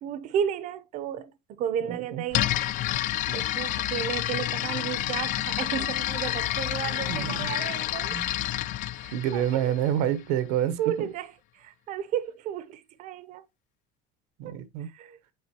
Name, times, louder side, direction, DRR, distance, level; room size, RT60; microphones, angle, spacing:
voice 1, 0.0-2.6 3.3-8.2 8.9-9.5 10.8-13.4 14.4-15.2, right 9 dB, 40° right, 0.6 m, -33 dB
voice 2, 1.8-2.2 7.1-7.5 8.1-8.4 9.1-11.1 14.4-14.9, right 10 dB, 90° right, 1.0 m, -28 dB
sound 1, 2.3-10.1, left 14 dB, 40° left, 0.4 m, -29 dB
sound 2, 6.0-10.7, left 10 dB, 90° left, 1.8 m, -50 dB
7.9 x 4.9 x 2.9 m
cardioid pair, 160°, 20 cm